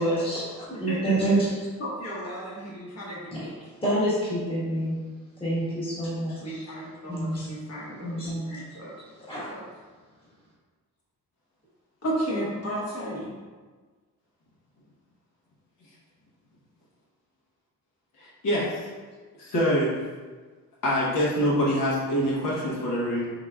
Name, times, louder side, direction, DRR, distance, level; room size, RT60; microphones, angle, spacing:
voice 1, 0.0-1.5 3.3-3.5 3.8-5.0 5.4-6.6 7.1-7.6 8.0-8.5 9.3-9.5, right 1 dB, 15° left, -9 dB, 1.4 m, -27 dB
voice 2, 0.8-1.4 1.8-3.5 6.4-8.9 9.3-9.6 12.0-13.3, right 1 dB, 45° left, -7 dB, 1.2 m, -34 dB
voice 3, 18.2-18.7 19.4-20.0 20.8-23.3, equal, 70° left, -6 dB, 1.1 m, -25 dB
4.9 x 3.8 x 2.3 m, 1.4 s
wide cardioid pair, 175°, 34 cm